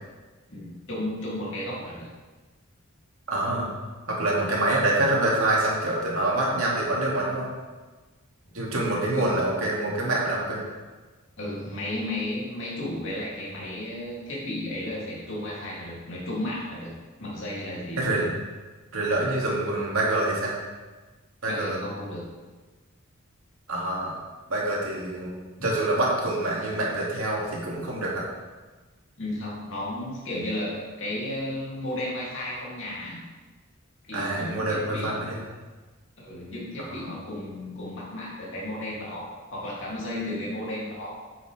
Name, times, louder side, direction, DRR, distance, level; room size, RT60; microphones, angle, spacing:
voice 1, 0.5-2.1 8.5-8.6 9.1-9.4 11.4-16.9 17.2-18.2 21.4-22.3 25.6-25.7 29.2-33.2 34.0-35.2 36.2-41.3, left 1 dB, 60° left, -5 dB, 2.8 m, -33 dB
voice 2, 3.3-3.7 4.1-7.5 8.5-10.6 18.0-18.3 18.9-20.5 21.4-21.8 23.7-24.2 24.5-28.3 34.1-35.4 36.8-37.1, right 2 dB, 80° right, -4 dB, 2.3 m, -26 dB
9.5 x 7.0 x 3.4 m, 1.3 s
head